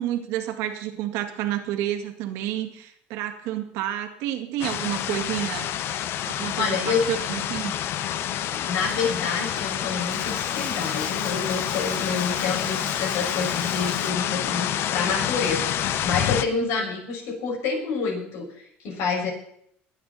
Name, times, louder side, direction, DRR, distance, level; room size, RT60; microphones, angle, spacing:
voice 1, 0.0-5.7 6.3-7.7 16.5-16.9, right 12 dB, 85° right, 5 dB, 1.9 m, -30 dB
sound 1, 4.6-16.4, left 11 dB, 60° left, 0.9 m, -28 dB
voice 2, 6.6-7.0 8.5-19.3, left 5 dB, 80° left, 1 dB, 5.7 m, -28 dB
Bathtub (filling or washing), 8.7-14.1, left 3 dB, 20° left, 1.5 m, -39 dB
21.5 x 9.3 x 4.2 m, 0.68 s
cardioid pair, 135°, 5 cm